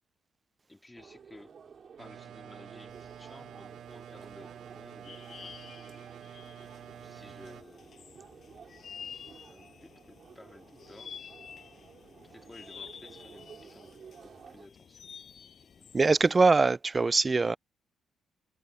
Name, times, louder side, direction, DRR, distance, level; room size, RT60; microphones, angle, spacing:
voice 1, 0.7-6.4 6.8-8.2 9.3-11.1 12.2-14.0 14.2-15.2 15.8-16.1, left 1 dB, 10° left, 2.9 m, -55 dB
sound 1, 0.9-14.7, right 6 dB, 50° right, 3.8 m, -53 dB
sound 2, 2.0-7.6, right 10 dB, 70° right, 0.7 m, -48 dB
sound 3, 2.9-16.4, left 7 dB, 50° left, 5.8 m, -51 dB
voice 2, 15.9-17.6, right 3 dB, 25° right, 0.4 m, -23 dB
cardioid pair, 90°, 0 cm